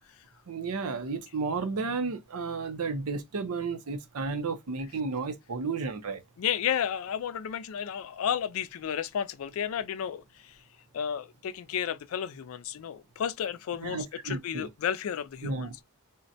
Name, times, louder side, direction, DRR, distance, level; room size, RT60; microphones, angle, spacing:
voice 1, 0.5-6.2 13.8-14.7 15.4-15.8, right 4 dB, 75° right, 0.6 m, -33 dB
voice 2, 6.4-10.6 10.9-15.7, left 8 dB, 65° left, 0.3 m, -32 dB
3.7 x 2.1 x 2.6 m
head